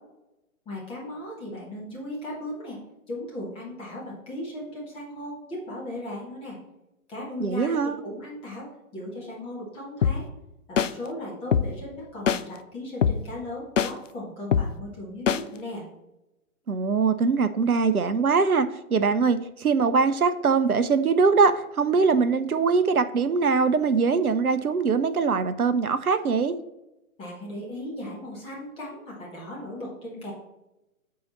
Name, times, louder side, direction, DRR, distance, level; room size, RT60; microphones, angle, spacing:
voice 1, 0.6-2.8 3.1-6.6 7.1-10.3 10.7-15.8 27.2-30.3, left 1 dB, 15° left, -4 dB, 1.5 m, -37 dB
voice 2, 7.4-8.0 16.7-26.6, right 5 dB, 90° right, 11 dB, 0.6 m, -22 dB
sound 1, 10.0-10.1 10.8-10.9 11.5-11.6 12.3-12.4 13.0-13.1 13.8-13.9 14.5-14.6 15.3-15.4, left 7 dB, 60° left, 0.5 m, -21 dB
7.7 x 4.7 x 4.1 m, 0.93 s
figure-of-eight pair, 130°, 43 cm